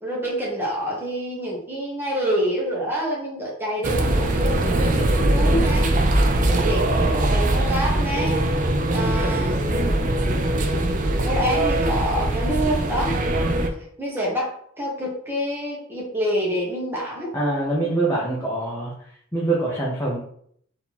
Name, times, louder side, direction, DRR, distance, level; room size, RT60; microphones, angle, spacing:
voice 1, 0.0-5.9 6.4-8.4 8.9-10.1 10.6-10.9 11.2-13.2 13.5-13.7 14.0-17.3, equal, 10° right, -4 dB, 1.0 m, -27 dB
sound 1, 3.8-13.7, right 1 dB, 40° right, 0.5 m, -21 dB
voice 2, 17.3-18.9 19.3-20.2, right 2 dB, 10° left, -7 dB, 0.9 m, -24 dB
4.3 x 2.8 x 4.2 m, 0.65 s
head